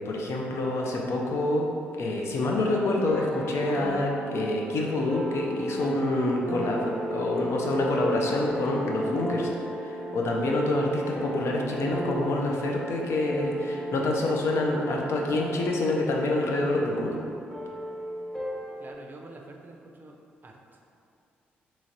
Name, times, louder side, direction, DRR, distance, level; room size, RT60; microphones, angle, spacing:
voice 1, 0.0-1.7 2.0-17.2, left 2 dB, 55° left, -1 dB, 0.5 m, -27 dB
sound 1, 2.5-18.9, right 1 dB, 5° left, 0.8 m, -35 dB
voice 2, 18.8-20.2 20.4-21.0, right 2 dB, 35° right, 1 dB, 0.5 m, -47 dB
3.9 x 3.0 x 2.5 m, 2.5 s
figure-of-eight pair, 40°, 5 cm